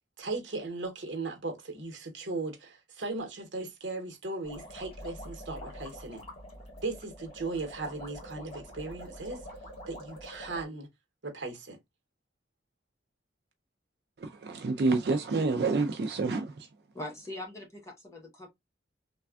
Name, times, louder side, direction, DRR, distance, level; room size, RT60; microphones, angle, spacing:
voice 1, 0.2-6.2 6.8-9.4 9.9-10.9 11.2-11.8, right 3 dB, 90° right, 0.9 m, -37 dB
sound 1, 4.4-10.7, equal, 30° left, 1.4 m, -45 dB
voice 2, 14.2-16.7, right 3 dB, 60° right, 0.4 m, -28 dB
voice 3, 16.9-18.5, left 1 dB, 15° left, 1.0 m, -41 dB
3.3 x 2.3 x 2.3 m
head